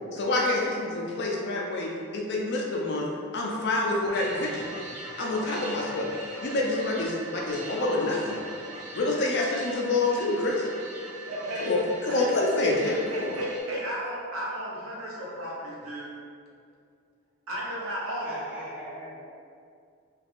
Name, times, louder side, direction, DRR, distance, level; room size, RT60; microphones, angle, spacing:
voice 1, 0.1-3.0 3.3-4.7 5.2-6.1 6.4-8.4 8.9-10.7 11.6-13.3, left 2 dB, 50° left, -2 dB, 0.4 m, -27 dB
sound 1, 4.1-13.6, right 2 dB, 90° right, 1.0 m, -41 dB
voice 2, 11.3-11.7 12.1-12.3 12.8-16.1 17.5-18.3, equal, 70° right, -5 dB, 0.7 m, -34 dB
voice 3, 18.2-19.3, right 1 dB, 5° right, -8 dB, 0.6 m, -40 dB
2.7 x 2.3 x 3.5 m, 2.3 s
head